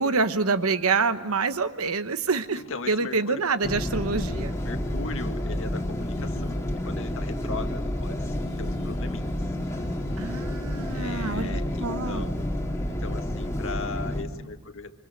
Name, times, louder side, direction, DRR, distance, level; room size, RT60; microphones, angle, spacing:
voice 1, 0.0-2.6 2.9-4.5 10.2-12.2, right 4 dB, 70° right, 11 dB, 1.1 m, -26 dB
voice 2, 2.5-3.5 4.1-4.2 4.6-6.6 6.8-9.3 10.1-10.3 10.9-12.4 12.9-15.0, left 3 dB, 65° left, 7 dB, 1.7 m, -38 dB
sound 1, 3.6-14.2, left 1 dB, 15° left, 2.4 m, -30 dB
sound 2, 4.3-11.8, left 1 dB, 85° left, 2.4 m, -47 dB
26.0 x 25.5 x 6.6 m, 1.2 s
head